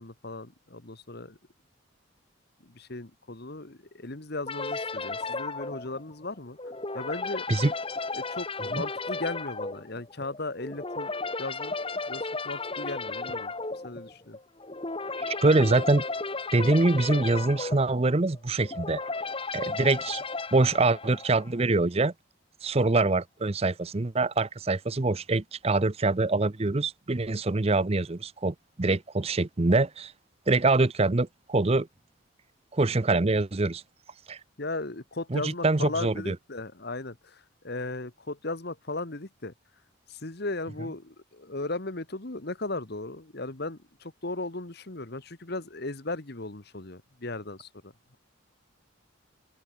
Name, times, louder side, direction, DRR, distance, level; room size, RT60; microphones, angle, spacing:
voice 1, 0.0-1.4 2.6-6.6 6.9-7.5 8.1-11.1 11.4-11.7 12.1-13.5 13.8-14.4 34.6-39.5 40.1-48.2, left 2 dB, 50° left, 1.6 m, -36 dB
sound 1, 4.5-21.6, left 3 dB, 25° left, 1.6 m, -34 dB
voice 2, 15.3-16.0 16.5-19.0 19.5-20.2 20.5-22.1 22.6-30.1 30.5-31.9 32.7-33.8 34.3-34.4 35.3-36.4, right 2 dB, 30° right, 0.6 m, -24 dB
open air
head